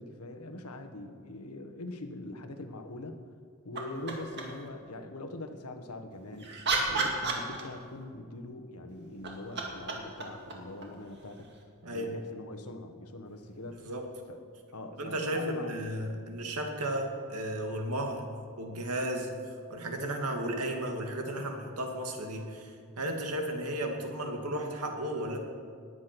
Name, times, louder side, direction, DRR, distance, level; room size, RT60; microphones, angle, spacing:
voice 1, 0.0-3.2 3.6-11.5 11.9-13.9 14.3-14.4 14.7-15.8, left 2 dB, 80° left, 6 dB, 1.3 m, -42 dB
sound 1, 3.7-4.7 6.1-8.0 9.0-11.6 13.7-13.8, right 3 dB, 50° right, 2.1 m, -34 dB
voice 2, 11.8-12.2 13.8-14.1 15.0-18.3 18.6-19.3 19.7-25.4, right 1 dB, 80° right, 3 dB, 2.1 m, -34 dB
20.0 x 8.6 x 6.0 m, 2.2 s
head